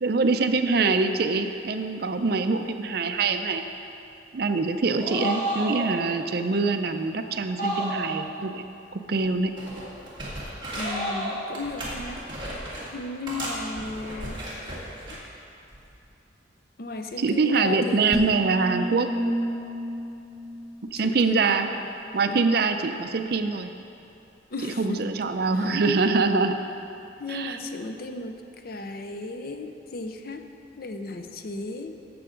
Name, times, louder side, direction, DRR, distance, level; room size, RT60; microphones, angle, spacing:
voice 1, 0.0-3.7 4.3-8.6 8.9-9.5 17.2-19.1 20.9-21.7 22.1-23.7 24.6-26.6 27.3-27.6, right 4 dB, 55° right, 7 dB, 0.5 m, -24 dB
sound 1, 4.8-5.9 7.6-8.3 10.6-11.4, right 1 dB, 35° left, 2.6 m, -30 dB
sound 2, 9.1-9.3 9.6-11.1 11.5-12.9 13.3-15.2 15.7-15.9, right 1 dB, 25° right, 2.1 m, -36 dB
voice 2, 10.7-12.2 12.9-14.4 16.8-18.4 21.0-21.8 22.3-22.4 24.5-25.1 25.6-25.8 27.2-30.4 30.8-32.0, left 2 dB, 50° left, 6 dB, 0.5 m, -35 dB
sound 3, 18.1-21.5, right 1 dB, ahead, 0.7 m, -31 dB
13.0 x 7.6 x 3.8 m, 2.8 s
head